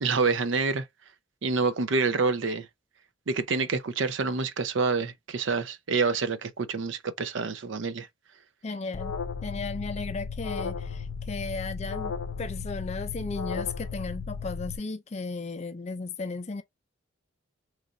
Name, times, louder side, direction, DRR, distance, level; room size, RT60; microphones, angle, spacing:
voice 1, 0.0-0.8 1.4-2.7 3.3-8.1, right 4 dB, 65° right, 0.5 m, -27 dB
voice 2, 8.6-9.1 9.4-12.1 12.4-16.6, left 3 dB, 30° left, 0.4 m, -35 dB
Alarm, 8.9-14.8, left 5 dB, 80° left, 0.5 m, -35 dB
3.2 x 2.5 x 3.8 m
head